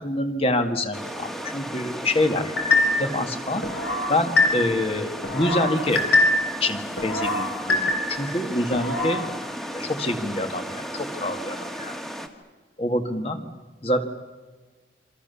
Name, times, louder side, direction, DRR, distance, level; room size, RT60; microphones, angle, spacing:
voice 1, 0.0-2.5 3.0-3.7 4.1-6.1 6.6-9.3 9.7-12.0 12.8-13.4 13.8-14.0, left 1 dB, 30° left, 6 dB, 2.0 m, -26 dB
sound 1, 0.9-12.3, equal, ahead, 1.8 m, -35 dB
sound 2, 2.6-3.1 3.6-4.9 5.2-6.6 7.0-8.3 8.7-9.2, left 2 dB, 65° left, 5.2 m, -23 dB
28.0 x 25.5 x 7.0 m, 1.4 s
head